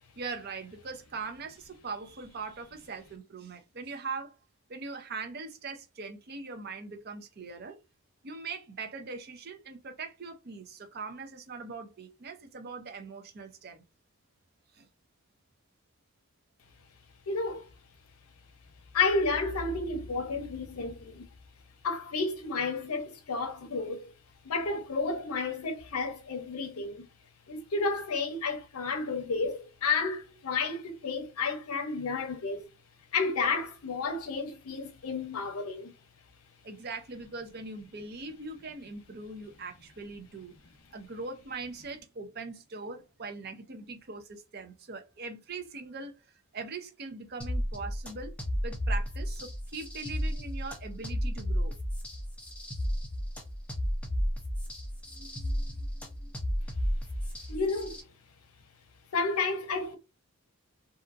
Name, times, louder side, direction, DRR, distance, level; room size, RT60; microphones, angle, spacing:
voice 1, 0.2-4.4 4.7-7.8 8.2-13.8 14.7-14.9 36.6-40.5 40.9-46.1 46.5-48.3 48.6-51.7 55.1-56.3, right 4 dB, 45° right, 0.5 m, -41 dB
voice 2, 17.3-17.7 18.9-21.3 21.8-24.1 24.4-27.1 27.5-32.6 33.1-35.9 57.5-58.0 59.1-60.0, left 4 dB, 80° left, 0.6 m, -31 dB
sound 1, 47.4-58.0, equal, 5° left, 0.4 m, -33 dB
2.7 x 2.5 x 2.4 m
head